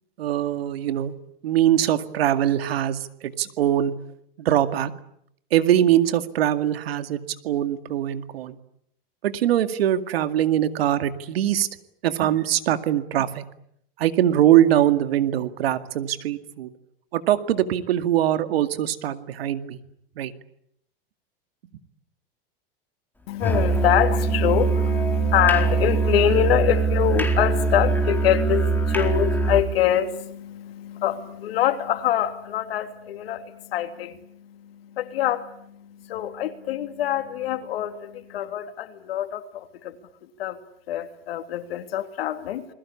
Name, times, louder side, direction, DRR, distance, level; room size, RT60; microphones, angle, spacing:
voice 1, 0.2-1.1 1.4-3.9 4.4-4.9 5.5-8.6 9.2-11.7 12.0-13.4 14.0-16.7 17.1-19.8 20.2-20.3, right 11 dB, 85° right, 2.2 m, -22 dB
voice 2, 23.3-39.9 40.4-40.6 40.9-42.7, left 11 dB, 80° left, 3.2 m, -25 dB
Musical instrument, 23.4-29.7, right 4 dB, 5° left, 4.5 m, -22 dB
29.0 x 21.5 x 8.6 m
supercardioid pair, 115°, 30 cm